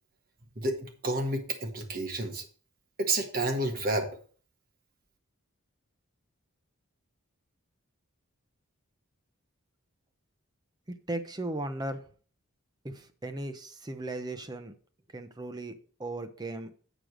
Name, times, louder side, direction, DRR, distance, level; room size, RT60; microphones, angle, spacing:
voice 1, 0.6-2.4 3.0-4.1, right 2 dB, 40° right, 4 dB, 1.5 m, -30 dB
voice 2, 11.1-12.0 12.8-14.7 15.1-16.7, right 2 dB, 20° right, 8 dB, 0.6 m, -37 dB
7.5 x 5.1 x 6.2 m, 0.42 s
head